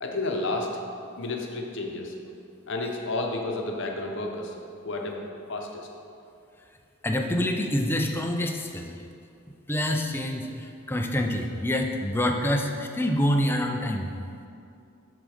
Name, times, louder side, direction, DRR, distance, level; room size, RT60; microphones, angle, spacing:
voice 1, 0.0-0.7 1.2-2.2 2.7-4.6 4.8-5.2 5.5-5.9, left 2 dB, 60° left, 2 dB, 0.9 m, -31 dB
voice 2, 7.0-8.9 9.7-14.1, left 1 dB, 10° left, 3 dB, 0.5 m, -26 dB
11.0 x 3.9 x 5.0 m, 2.5 s
head